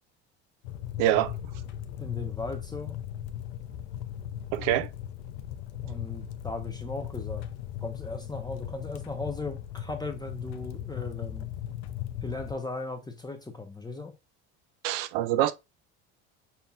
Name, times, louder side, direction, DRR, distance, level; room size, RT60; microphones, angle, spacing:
sound 1, 0.6-12.5, left 11 dB, 85° left, 0.6 m, -38 dB
voice 1, 1.0-1.3 4.5-4.9 14.8-15.5, right 13 dB, 75° right, 0.6 m, -25 dB
voice 2, 2.0-3.0 5.8-7.4 7.8-11.5 12.2-14.1, left 3 dB, 10° left, 0.7 m, -37 dB
5.6 x 2.7 x 2.3 m
supercardioid pair, 85°, 34 cm